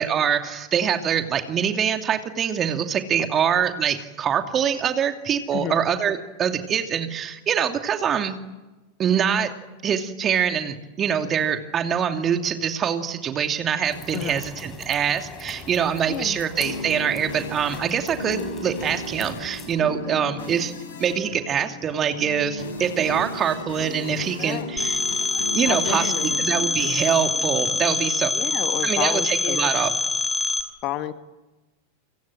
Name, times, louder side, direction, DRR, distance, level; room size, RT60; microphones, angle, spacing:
voice 1, 0.0-8.4 9.0-9.5 9.8-20.7 21.0-25.0 25.5-28.3 28.8-29.9, right 8 dB, 25° right, 6 dB, 2.7 m, -24 dB
sound 1, 13.8-19.8, left 4 dB, 20° left, 5.7 m, -42 dB
sound 2, 16.1-28.6, left 2 dB, 60° left, 6.9 m, -36 dB
voice 2, 24.4-24.7 25.6-26.4 28.3-29.9 30.8-31.1, left 13 dB, 40° left, 11 dB, 1.5 m, -30 dB
Telephone, 24.8-30.6, left 2 dB, 5° left, 4.8 m, -25 dB
29.5 x 25.0 x 7.6 m, 1.1 s
figure-of-eight pair, 90°, 0 cm